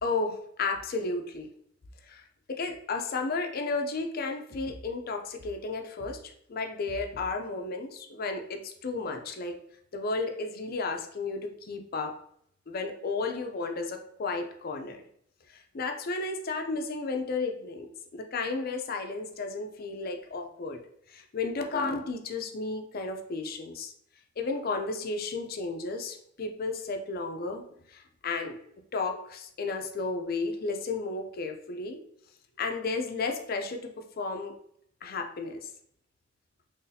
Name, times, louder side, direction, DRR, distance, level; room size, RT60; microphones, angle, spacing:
voice 1, 0.0-1.5 2.0-9.6 9.9-12.2 12.7-15.0 15.5-20.8 21.1-23.9 24.4-27.6 27.9-28.6 28.9-32.0 32.6-34.5 35.0-35.7, left 3 dB, 50° left, 5 dB, 0.5 m, -33 dB
3.9 x 3.1 x 2.7 m, 0.70 s
head